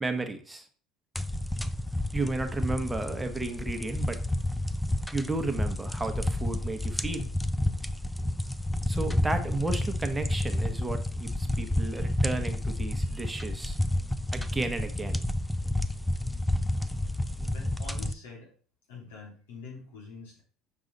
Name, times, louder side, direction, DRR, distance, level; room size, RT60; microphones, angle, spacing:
voice 1, 0.0-0.7 2.1-4.2 5.1-7.3 8.9-13.8 14.3-15.2, right 2 dB, 15° right, 7 dB, 1.0 m, -33 dB
sound 1, 1.2-18.1, left 1 dB, 5° left, 0.5 m, -30 dB
voice 2, 17.4-18.5 18.9-20.4, left 4 dB, 90° left, -2 dB, 3.0 m, -45 dB
6.5 x 4.7 x 3.9 m, 0.42 s
supercardioid pair, 85°, 0 cm